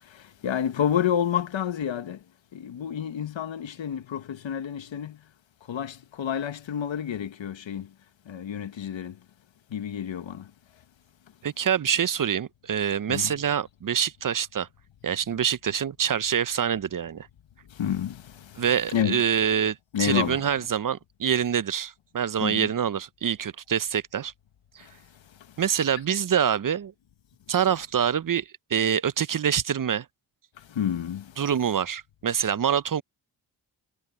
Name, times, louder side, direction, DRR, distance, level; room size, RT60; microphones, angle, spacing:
voice 1, 0.4-2.2 2.5-5.2 5.7-7.9 8.3-9.1 9.7-10.4 13.1-13.3 17.8-18.2 18.9-19.2 19.9-20.5 22.4-22.7 30.7-31.2, left 9 dB, 75° left, 1.6 m, -29 dB
voice 2, 11.4-14.7 15.0-17.3 18.6-24.3 24.7-24.9 25.6-26.9 27.5-28.4 28.7-30.1 31.4-33.0, right 8 dB, 45° right, 0.7 m, -25 dB
supercardioid pair, 40°, 46 cm